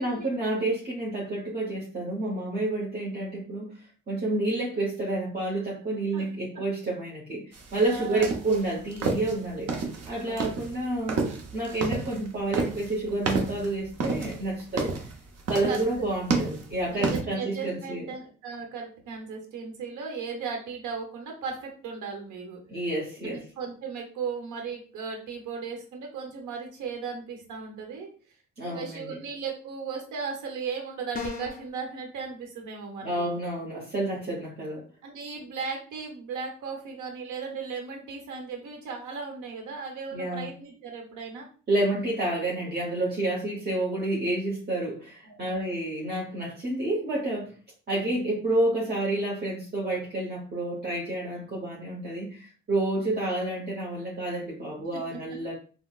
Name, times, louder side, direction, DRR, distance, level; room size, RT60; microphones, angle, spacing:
voice 1, 0.0-3.7 4.1-9.7 10.1-11.2 11.5-14.9 15.5-18.1 22.7-23.4 28.6-29.2 33.0-34.8 40.1-40.5 41.7-47.5 47.9-55.5, right 2 dB, 35° right, -4 dB, 1.0 m, -29 dB
sound 1, 7.5-17.2, right 4 dB, 55° right, 0.8 m, -30 dB
voice 2, 7.9-8.4 10.1-10.4 14.8-14.9 15.7-16.1 16.9-22.6 23.2-28.1 28.6-33.3 35.0-41.5 45.2-45.8 53.0-53.1 54.9-55.0, right 5 dB, 80° right, 2 dB, 1.0 m, -36 dB
sound 2, 31.1-31.7, left 5 dB, 30° left, 0.5 m, -35 dB
3.8 x 2.1 x 2.4 m, 0.40 s
cardioid pair, 90°, 30 cm